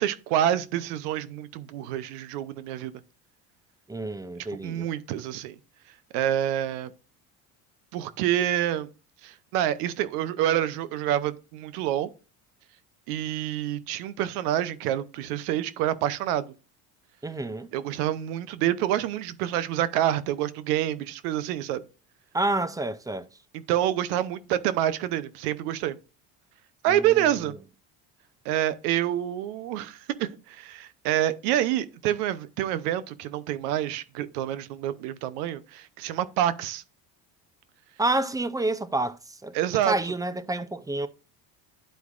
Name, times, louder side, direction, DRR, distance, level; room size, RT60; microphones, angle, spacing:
voice 1, 0.0-2.9 4.6-5.5 6.1-6.9 7.9-8.9 9.2-12.1 13.1-16.5 17.7-21.8 23.7-26.0 26.8-27.6 28.4-36.8 39.5-39.9, right 12 dB, 90° right, 0.8 m, -27 dB
voice 2, 3.9-4.9 17.2-17.7 22.3-23.3 26.9-27.5 38.0-39.5 39.8-41.1, right 2 dB, 10° right, 0.4 m, -29 dB
11.5 x 4.7 x 2.4 m
supercardioid pair, 95°, 45 cm